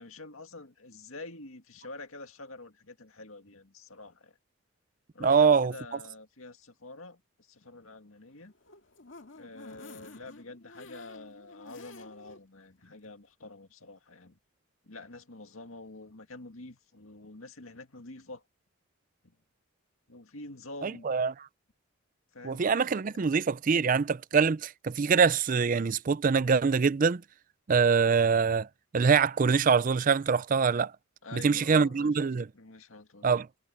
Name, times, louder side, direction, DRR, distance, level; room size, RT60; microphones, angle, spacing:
voice 1, 0.0-4.4 5.1-8.5 9.4-14.4 14.8-18.4 19.2-19.4 20.1-21.1 22.3-22.7 23.1-23.3 31.2-33.3, left 2 dB, 85° left, 2.2 m, -47 dB
voice 2, 5.2-5.7 20.8-21.3 22.4-27.2 27.7-28.7 28.9-30.9 31.3-32.5 33.2-33.5, right 5 dB, 40° right, 0.4 m, -24 dB
sound 1, 8.4-12.4 12.8-12.9 13.2-13.3, left 3 dB, 65° left, 2.1 m, -51 dB
head